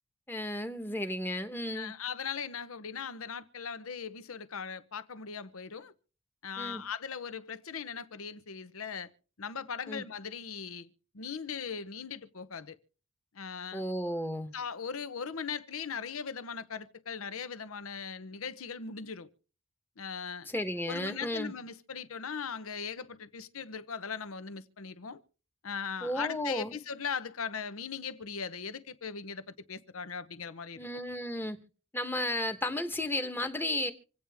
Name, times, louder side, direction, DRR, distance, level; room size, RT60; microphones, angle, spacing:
voice 1, 0.3-1.9 6.6-6.8 9.9-10.0 13.7-14.5 20.5-21.5 26.0-26.8 30.8-31.6 31.9-33.9, left 1 dB, 10° left, 1.1 m, -33 dB
voice 2, 1.7-5.9 6.4-9.1 9.4-10.9 11.1-12.8 13.3-13.8 14.5-19.3 20.0-20.5 20.9-25.2 25.6-30.8, left 6 dB, 80° left, 0.9 m, -39 dB
26.5 x 8.8 x 3.5 m
head